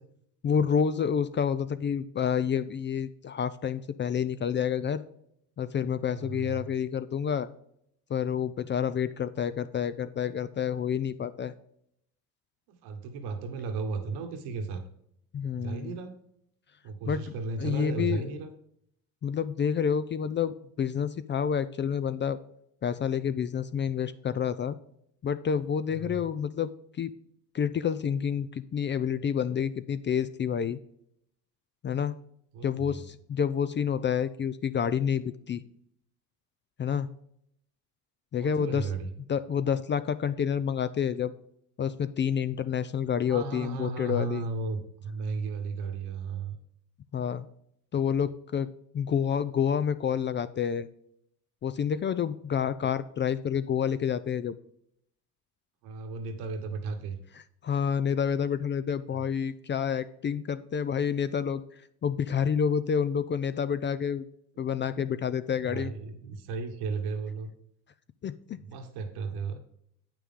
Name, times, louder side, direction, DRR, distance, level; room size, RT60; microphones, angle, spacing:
voice 1, 0.4-5.0 5.6-7.5 8.1-11.5 15.3-15.9 17.1-17.2 17.6-18.2 19.2-22.4 22.8-24.8 25.2-26.7 27.0-27.1 27.5-30.8 31.8-32.1 32.6-35.6 36.8-37.1 38.3-38.9 39.3-41.3 41.8-44.4 47.1-47.5 47.9-50.9 51.6-54.5 57.6-61.6 62.0-64.2 64.6-65.9 68.2-68.6, left 7 dB, 30° left, 14 dB, 0.4 m, -28 dB
voice 2, 6.1-6.7 12.7-14.8 15.6-16.1 16.8-18.5 25.9-26.3 32.5-33.0 38.4-39.1 43.3-46.6 55.8-57.2 59.1-59.2 64.9-65.0 65.6-67.5 68.6-69.6, right 4 dB, 75° right, 6 dB, 1.4 m, -35 dB
8.3 x 6.0 x 3.7 m, 0.72 s
supercardioid pair, 80°, 40 cm